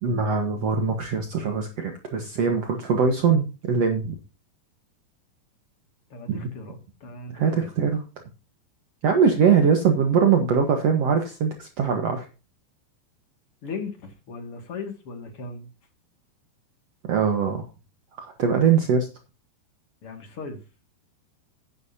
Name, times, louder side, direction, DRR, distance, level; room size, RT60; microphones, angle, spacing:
voice 1, 0.0-4.2 6.3-6.5 7.3-8.0 9.0-12.2 17.1-17.7 18.2-19.1, right 6 dB, 70° right, 4 dB, 1.5 m, -22 dB
voice 2, 6.1-7.7 13.6-15.7 20.0-20.6, left 4 dB, 40° left, 5 dB, 2.4 m, -37 dB
13.5 x 10.5 x 2.8 m, 0.31 s
omnidirectional pair, 5.2 m